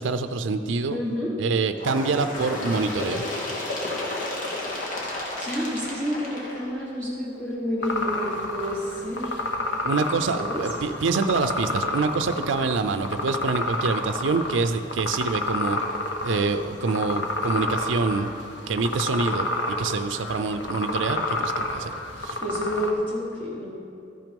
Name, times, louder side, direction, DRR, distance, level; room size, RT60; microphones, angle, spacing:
voice 1, 0.0-1.0 1.4-3.3 9.8-15.8 16.2-18.3 18.7-21.9 22.2-22.4, right 4 dB, 80° right, 9 dB, 0.4 m, -26 dB
voice 2, 0.9-1.3 5.4-9.4 10.3-10.6 22.4-23.8, equal, 10° left, -7 dB, 1.5 m, -29 dB
Bird, 1.8-7.2 8.1-8.2 8.6-8.7 9.6-9.7 10.6-10.7 11.6-11.7, left 2 dB, 45° left, 1.7 m, -32 dB
sound 1, 7.8-22.9, left 2 dB, 70° left, 1.0 m, -30 dB
13.5 x 6.0 x 5.3 m, 2.5 s
head